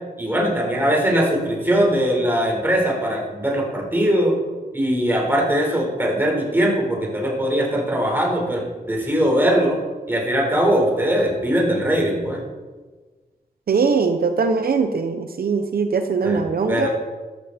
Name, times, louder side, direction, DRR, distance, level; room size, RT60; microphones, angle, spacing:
voice 1, 0.2-4.3 4.7-9.8 10.1-12.4 16.2-16.4 16.7-16.9, equal, 15° right, -1 dB, 4.4 m, -20 dB
voice 2, 13.7-16.9, right 5 dB, 70° right, 7 dB, 0.9 m, -21 dB
14.0 x 12.5 x 4.4 m, 1.3 s
wide cardioid pair, 100°, 16 cm